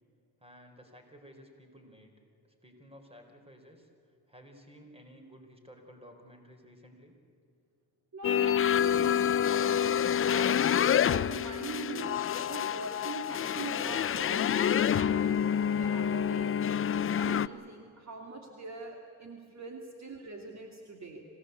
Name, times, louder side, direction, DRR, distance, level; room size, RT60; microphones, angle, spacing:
voice 1, 0.4-2.1 2.6-3.9 4.3-7.1, equal, 15° right, 5 dB, 4.4 m, -54 dB
voice 2, 8.1-15.4 15.7-16.6 16.9-21.3, right 3 dB, 40° right, 2 dB, 2.8 m, -43 dB
sound 1, 8.2-17.5, left 9 dB, 35° left, 0.5 m, -27 dB
26.5 x 17.0 x 8.3 m, 2.4 s
cardioid pair, 90°, 40 cm